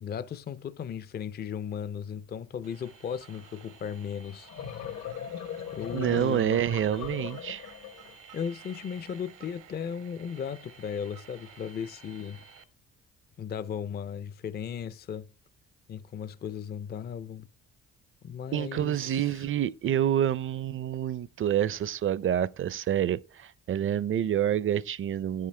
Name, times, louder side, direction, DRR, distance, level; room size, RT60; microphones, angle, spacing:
voice 1, 0.0-4.5 5.7-6.6 8.3-12.4 13.4-15.3 15.9-17.5 18.2-19.4, left 7 dB, 35° left, 0.4 m, -36 dB
sound 1, 2.6-12.6, right 6 dB, 85° right, 1.1 m, -53 dB
sound 2, 4.3-8.2, left 9 dB, 65° left, 1.0 m, -39 dB
voice 2, 5.9-7.7 18.5-25.5, right 10 dB, 45° right, 0.5 m, -28 dB
9.3 x 7.6 x 3.2 m
cardioid pair, 90°, 30 cm